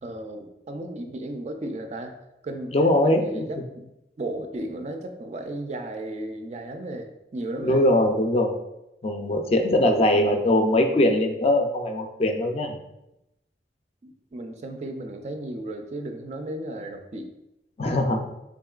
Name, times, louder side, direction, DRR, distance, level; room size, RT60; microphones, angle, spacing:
voice 1, 0.0-2.1 2.4-2.7 3.0-3.9 4.2-7.8 10.1-10.3 14.0-17.3, right 1 dB, 40° right, 5 dB, 0.3 m, -34 dB
voice 2, 2.7-3.4 7.6-8.5 9.0-12.7 17.8-18.2, left 1 dB, 35° left, 4 dB, 0.4 m, -21 dB
3.8 x 3.6 x 2.3 m, 0.89 s
head